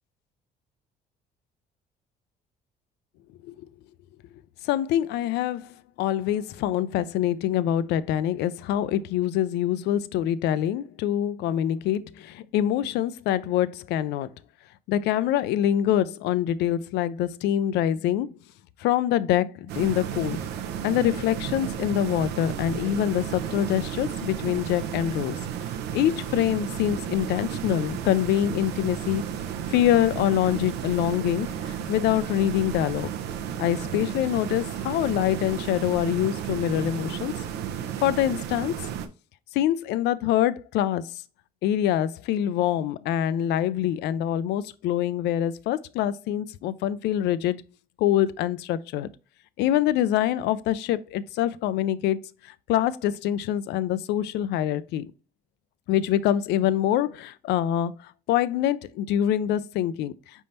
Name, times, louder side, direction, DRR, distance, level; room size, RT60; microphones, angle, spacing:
voice 1, 4.6-5.7 6.0-14.3 14.9-18.4 18.8-20.4 20.8-25.4 25.9-29.2 29.7-33.1 33.6-37.3 38.0-38.7 39.5-41.1 41.6-47.6 48.0-49.1 49.6-55.1 55.9-60.1, left 11 dB, 80° left, 0.4 m, -25 dB
sound 1, 19.7-39.1, right 8 dB, 80° right, 0.6 m, -33 dB
5.2 x 3.5 x 2.8 m
cardioid pair, 110°, 17 cm